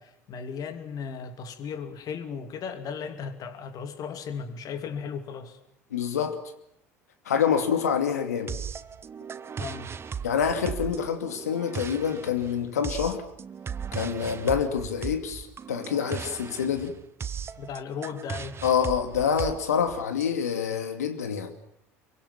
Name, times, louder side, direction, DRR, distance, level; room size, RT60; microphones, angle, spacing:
voice 1, 0.0-5.6 9.6-9.9 17.6-18.6, left 6 dB, 50° left, 2.9 m, -36 dB
voice 2, 5.9-6.4 7.3-8.6 10.2-13.2 13.9-16.9 18.6-21.5, left 7 dB, 80° left, 2.4 m, -26 dB
sound 1, 8.5-20.2, right 7 dB, 30° right, 1.0 m, -37 dB
26.5 x 24.0 x 7.4 m
hypercardioid pair, 70°, 8 cm